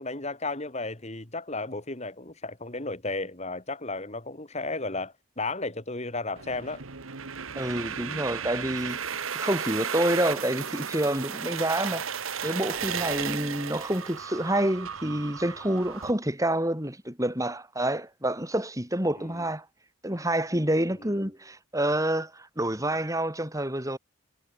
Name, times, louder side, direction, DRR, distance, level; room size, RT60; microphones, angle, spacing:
voice 1, 0.0-6.8 7.9-8.2 19.2-19.5 21.0-21.3, left 3 dB, 35° left, 2.4 m, -34 dB
sound 1, 6.4-16.1, right 7 dB, 90° right, 1.5 m, -34 dB
voice 2, 7.6-9.0 9.3-12.1 12.4-19.7 20.0-24.0, right 1 dB, 15° right, 5.7 m, -28 dB
head